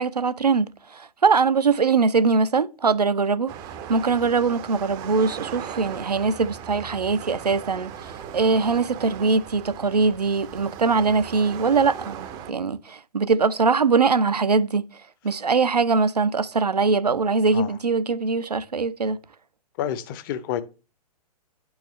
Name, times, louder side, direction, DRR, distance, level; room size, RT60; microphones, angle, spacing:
voice 1, 0.0-3.5 3.9-14.8 15.2-19.2, right 4 dB, 85° right, 0.5 m, -22 dB
sound 1, 3.5-12.5, right 8 dB, 20° right, 0.5 m, -38 dB
voice 2, 19.8-20.6, left 10 dB, 35° left, 0.6 m, -29 dB
10.5 x 4.7 x 3.2 m
figure-of-eight pair, 115°, 20 cm